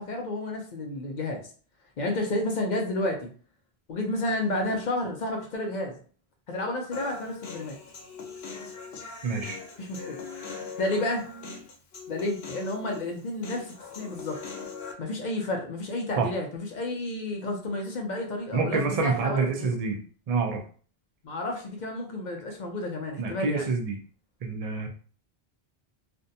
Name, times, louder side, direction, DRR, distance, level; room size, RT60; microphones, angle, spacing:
voice 1, 0.0-1.4 2.0-3.3 3.9-6.0 6.5-7.8 9.8-10.2 10.8-11.2 12.1-14.4 15.0-19.7 21.2-23.7, left 1 dB, 55° left, 2 dB, 0.5 m, -31 dB
Human voice, 6.9-14.9, left 4 dB, 80° left, 0.9 m, -41 dB
voice 2, 9.2-9.6 16.2-16.3 18.5-20.0 20.3-20.6 23.2-24.0 24.4-24.9, right 4 dB, 50° right, 3 dB, 0.5 m, -27 dB
2.5 x 2.1 x 2.6 m, 0.42 s
omnidirectional pair, 1.0 m